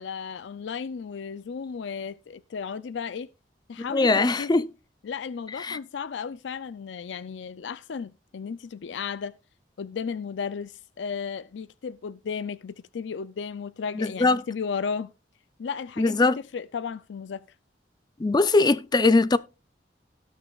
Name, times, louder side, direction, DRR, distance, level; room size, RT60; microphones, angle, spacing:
voice 1, 0.0-3.3 3.7-4.7 5.0-9.4 9.8-15.1 15.6-16.3 16.5-17.4, left 6 dB, 85° left, 0.4 m, -34 dB
voice 2, 3.9-4.7 5.6-5.8 14.0-14.4 16.0-16.4 18.2-19.4, left 3 dB, 25° left, 0.5 m, -21 dB
17.5 x 6.4 x 2.4 m
head